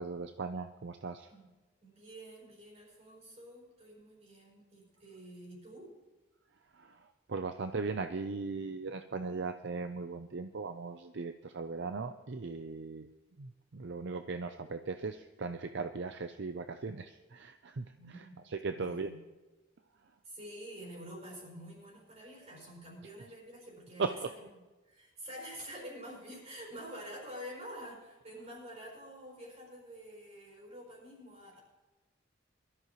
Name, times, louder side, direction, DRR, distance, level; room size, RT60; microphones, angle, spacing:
voice 1, 0.0-1.3 6.7-13.1 13.4-19.1 24.0-24.1, right 4 dB, 65° right, 8 dB, 0.6 m, -38 dB
voice 2, 1.8-5.9 18.0-18.4 18.7-19.2 20.2-24.5 24.9-31.6, equal, 35° right, -4 dB, 5.3 m, -48 dB
23.0 x 13.0 x 3.1 m, 1.2 s
head